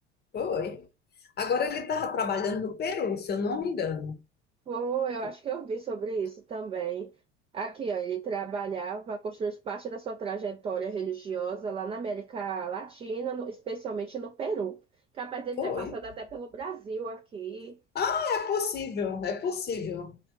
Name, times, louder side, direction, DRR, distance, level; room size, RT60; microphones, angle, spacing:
voice 1, 0.3-0.9 1.4-4.2 15.6-16.0 17.9-20.2, left 5 dB, 30° left, 0.8 m, -30 dB
voice 2, 4.7-7.1 7.5-14.8 15.2-17.8, right 5 dB, 15° right, 0.3 m, -34 dB
3.1 x 2.2 x 3.6 m
figure-of-eight pair, 70°, 35 cm